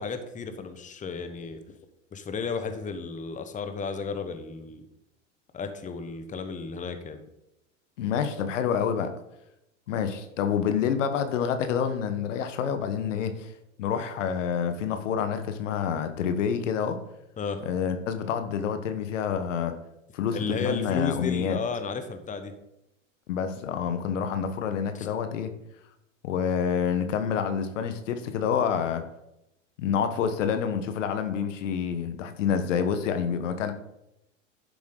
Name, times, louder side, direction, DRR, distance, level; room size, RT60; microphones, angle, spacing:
voice 1, 0.0-1.6 2.1-4.8 5.5-7.2 17.4-17.6 20.3-22.5 25.0-25.1, left 5 dB, 20° left, 8 dB, 1.2 m, -33 dB
voice 2, 8.0-9.1 9.9-13.5 13.8-17.0 17.6-19.7 20.1-21.6 23.3-25.5 26.2-29.0 29.8-33.7, left 7 dB, 70° left, 9 dB, 1.3 m, -28 dB
11.5 x 7.1 x 3.9 m, 0.86 s
hypercardioid pair, 105°, 38 cm